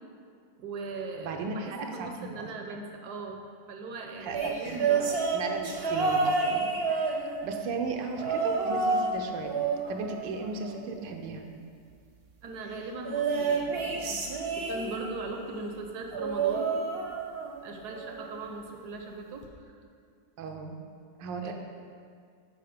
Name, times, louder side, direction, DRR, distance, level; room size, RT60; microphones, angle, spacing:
voice 1, 0.6-3.4 3.7-5.1 12.4-14.2 14.6-16.7 17.4-19.8 21.4-21.5, right 3 dB, 70° right, 3 dB, 1.1 m, -39 dB
voice 2, 1.2-2.8 4.2-9.5 9.9-11.4 20.4-20.8 21.2-21.5, right 4 dB, 90° right, 3 dB, 1.3 m, -36 dB
sound 1, 4.3-7.6 8.2-9.2 9.4-11.0 13.0-15.2 16.1-17.6 17.9-18.3 19.4-19.5, right 4 dB, 55° right, 0.7 m, -29 dB
6.8 x 4.2 x 5.0 m, 2.2 s
omnidirectional pair, 1.9 m